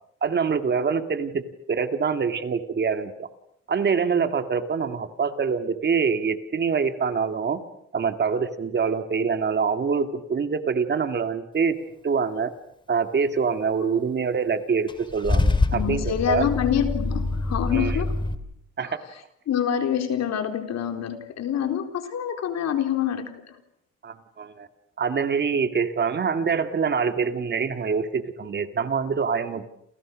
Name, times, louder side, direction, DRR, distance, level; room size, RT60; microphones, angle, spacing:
voice 1, 0.2-1.4 1.7-3.3 3.7-7.6 7.9-11.8 12.0-12.5 12.9-16.5 17.7-18.0 18.8-19.0 24.0-24.7 25.0-29.7, right 5 dB, 35° right, 9 dB, 2.1 m, -25 dB
Car / Engine starting / Idling, 14.9-18.3, left 3 dB, 15° left, 2.4 m, -25 dB
voice 2, 15.7-18.1 19.5-23.6, left 9 dB, 65° left, 7 dB, 4.1 m, -26 dB
29.0 x 29.0 x 6.3 m, 0.72 s
cardioid pair, 135°, 29 cm